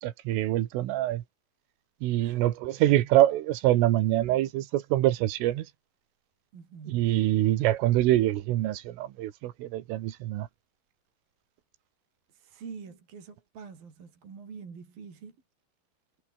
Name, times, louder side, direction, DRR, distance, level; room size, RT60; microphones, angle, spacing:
voice 1, 0.0-1.2 2.0-5.7 6.9-10.5, right 14 dB, 80° right, 4.0 m, -25 dB
voice 2, 6.5-7.1 12.3-15.4, right 5 dB, 45° right, 6.1 m, -45 dB
omnidirectional pair, 5.8 m